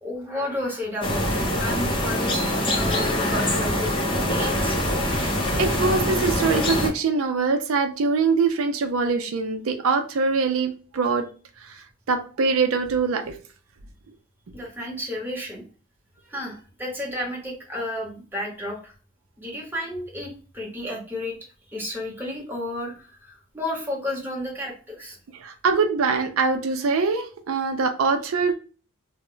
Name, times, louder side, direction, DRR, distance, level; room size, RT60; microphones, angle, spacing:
voice 1, 0.0-1.2 1.6-4.8 14.5-15.6 16.3-18.9 19.4-21.3 21.7-25.2, left 1 dB, 10° right, -3 dB, 0.8 m, -32 dB
sound 1, 1.0-6.9, left 1 dB, 25° left, 0.6 m, -24 dB
voice 2, 5.1-11.2 11.7-11.8 12.1-13.4 25.4-28.5, right 4 dB, 80° right, 6 dB, 0.4 m, -23 dB
2.1 x 2.1 x 3.7 m, 0.37 s
head